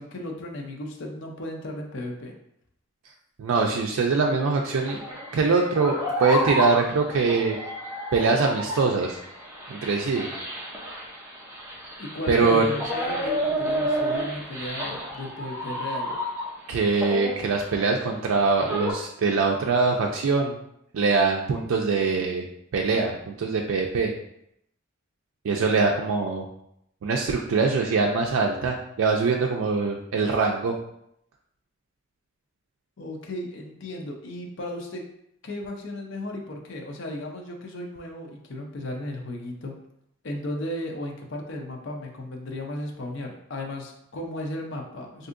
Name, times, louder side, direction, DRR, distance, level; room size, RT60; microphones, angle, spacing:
voice 1, 0.0-2.3 12.0-16.2 33.0-35.0 35.4-39.7 40.2-45.3, left 1 dB, 60° left, 1 dB, 0.5 m, -35 dB
voice 2, 3.4-5.0 5.3-7.6 8.1-9.2 9.7-10.3 12.3-12.6 16.7-20.6 20.9-22.5 22.7-24.1 25.4-26.5 27.0-30.8, right 4 dB, 80° right, 1 dB, 0.4 m, -23 dB
sound 1, 4.7-16.7 17.0-18.9, equal, 10° right, 0.6 m, -31 dB
3.5 x 2.6 x 2.5 m, 0.75 s
head